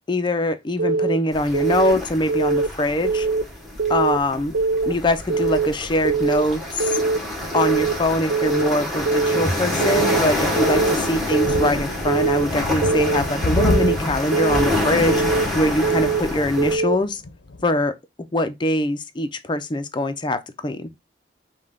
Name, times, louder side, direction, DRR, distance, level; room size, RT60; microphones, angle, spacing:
voice 1, 0.1-3.3 3.9-4.6 4.8-7.0 7.5-15.2 15.5-17.2 17.6-17.9 18.3-20.9, left 1 dB, 25° left, 0.5 m, -23 dB
Keyboard (musical) / Alarm, 0.8-1.2 1.5-1.9 2.3-2.7 3.0-3.4 3.8-4.2 4.5-4.9 5.3-5.7 6.0-6.4 6.8-7.2 7.5-7.9 8.3-8.7 9.1-9.4 9.8-10.2 10.6-10.9 11.3-11.7 12.1-12.4 12.8-13.2 13.6-13.9 14.3-14.7 15.1-15.4 15.8-16.2 16.6-17.0, right 4 dB, 80° right, 0.4 m, -22 dB
sound 1, 1.3-16.8, left 1 dB, ahead, 1.1 m, -27 dB
sound 2, 10.4-17.7, left 2 dB, 80° left, 0.6 m, -30 dB
5.3 x 2.3 x 3.6 m
head